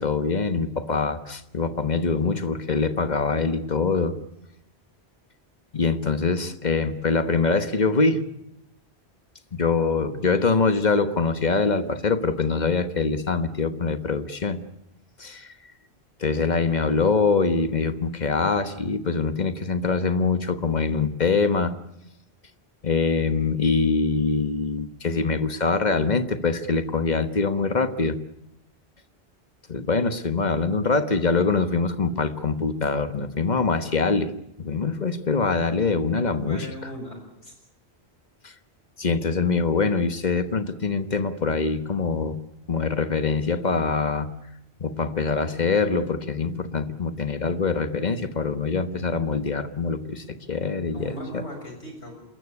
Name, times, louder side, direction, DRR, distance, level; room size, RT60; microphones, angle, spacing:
voice 1, 0.0-4.2 5.7-8.2 9.5-14.6 15.2-15.5 16.2-21.8 22.8-28.2 29.7-34.3 34.6-36.7 38.4-38.5 39.0-42.4 42.7-44.3 44.8-51.1, left 4 dB, 45° left, 11 dB, 1.3 m, -24 dB
voice 2, 36.3-37.6 50.9-52.2, equal, 85° left, 2 dB, 6.9 m, -38 dB
27.0 x 14.5 x 9.7 m, 0.84 s
omnidirectional pair, 1.1 m